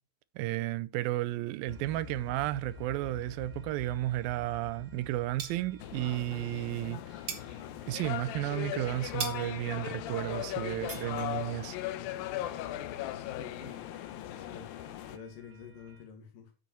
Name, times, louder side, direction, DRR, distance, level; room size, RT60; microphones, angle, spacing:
voice 1, 0.4-7.0 7.9-11.8, right 16 dB, 85° right, 2.4 m, -33 dB
sound 1, 1.7-16.0, left 3 dB, 30° right, 1.4 m, -52 dB
sound 2, 3.7-4.8 5.1-6.2 6.5-11.7, right 7 dB, 55° right, 1.3 m, -44 dB
sound 3, 5.8-15.2, left 13 dB, 85° left, 2.5 m, -38 dB
voice 2, 10.4-10.8 13.2-13.8 14.3-14.7 15.1-16.5, left 6 dB, 70° left, 3.1 m, -48 dB
8.3 x 7.6 x 4.4 m
omnidirectional pair, 4.1 m